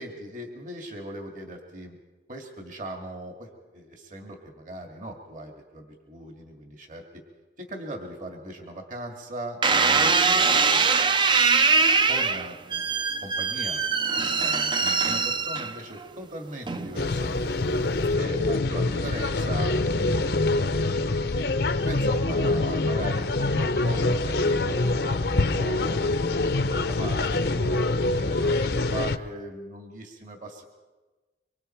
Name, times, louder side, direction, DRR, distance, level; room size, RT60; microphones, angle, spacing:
voice 1, 0.0-2.0 2.3-7.0 7.6-10.9 12.1-12.8 13.2-13.8 14.4-17.6 18.2-20.7 21.8-26.3 26.6-30.6, right 1 dB, 45° right, 2 dB, 2.2 m, -39 dB
sound 1, 9.6-16.0 16.7-17.1, right 4 dB, 25° right, 0.6 m, -22 dB
sound 2, 17.0-29.2, left 2 dB, 60° left, 0.7 m, -25 dB
24.5 x 24.5 x 4.6 m, 1.2 s
head